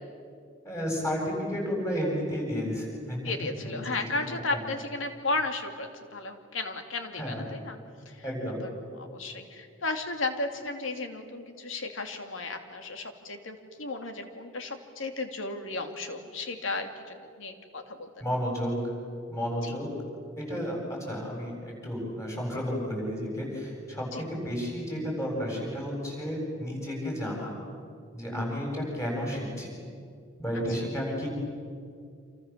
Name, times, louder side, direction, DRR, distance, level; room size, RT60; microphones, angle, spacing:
voice 1, 0.6-3.2 3.6-3.8 4.3-4.6 7.2-7.4 8.2-8.6 18.2-18.9 19.3-19.9 20.4-27.6 28.1-29.8 30.4-31.3, equal, 15° left, -1 dB, 7.9 m, -32 dB
voice 2, 3.2-7.8 8.1-8.2 9.0-18.2 19.6-19.7 24.1-24.2 28.3-28.6, left 3 dB, 70° left, 5 dB, 2.7 m, -34 dB
28.0 x 28.0 x 7.5 m, 2.3 s
head